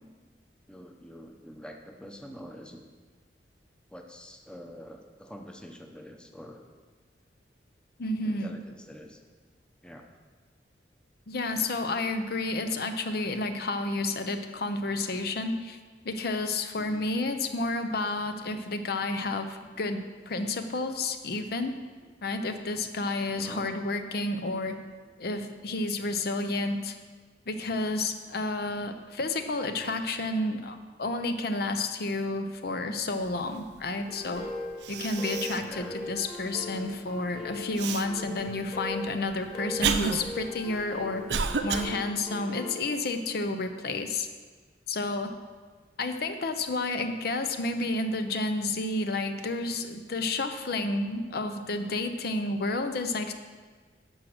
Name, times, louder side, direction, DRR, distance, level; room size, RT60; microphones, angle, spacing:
voice 1, 0.7-2.9 3.9-6.6 8.2-9.2 9.8-10.1 16.8-17.1 18.5-18.7 22.0-22.1 23.4-23.7 29.7-29.9 33.1-33.2 35.6-36.0 38.4-38.5 40.3-40.4, equal, 5° left, 3 dB, 0.8 m, -46 dB
voice 2, 8.0-8.6 11.3-15.8 16.0-21.8 22.2-24.8 25.2-27.0 27.5-34.4 34.9-41.2 41.6-44.3 44.9-45.4 46.0-53.3, left 2 dB, 60° left, 7 dB, 0.7 m, -30 dB
sound 1, 34.1-42.8, left 3 dB, 30° left, 1.8 m, -39 dB
Cough, 34.4-34.5 34.8-35.7 36.2-36.3 37.8-38.1 38.8-41.9, right 5 dB, 70° right, 0.6 m, -30 dB
11.0 x 6.3 x 6.1 m, 1.4 s
head